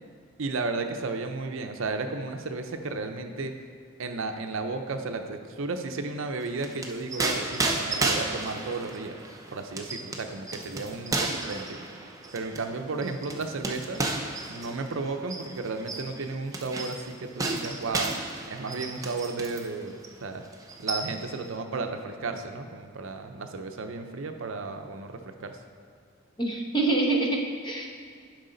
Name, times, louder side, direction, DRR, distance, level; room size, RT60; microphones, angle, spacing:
voice 1, 0.4-3.5 4.0-9.1 9.5-11.8 12.3-14.0 14.5-18.1 18.5-20.4 20.8-25.6, right 3 dB, 70° right, 6 dB, 0.6 m, -33 dB
sound 1, 6.4-19.7 20.0-20.2 20.5-21.4, right 2 dB, 15° right, 0.5 m, -33 dB
voice 2, 26.4-27.9, right 2 dB, 20° left, 0 dB, 0.8 m, -26 dB
10.5 x 4.8 x 3.9 m, 2.2 s
head